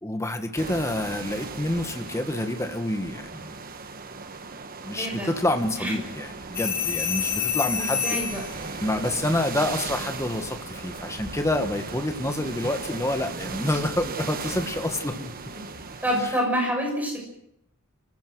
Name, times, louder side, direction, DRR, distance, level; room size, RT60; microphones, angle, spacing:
voice 1, 0.0-3.5 4.8-8.2 8.8-15.3, left 1 dB, 15° left, 6 dB, 1.5 m, -28 dB
sound 1, 0.6-16.3, right 4 dB, 40° right, 1.3 m, -37 dB
voice 2, 5.0-5.3 5.8-5.9 7.8-8.4 16.0-17.2, equal, 5° right, 0 dB, 6.5 m, -27 dB
sound 2, 6.5-8.5 10.9-11.2, left 7 dB, 40° left, 4.3 m, -27 dB
28.5 x 16.0 x 6.3 m, 0.78 s
head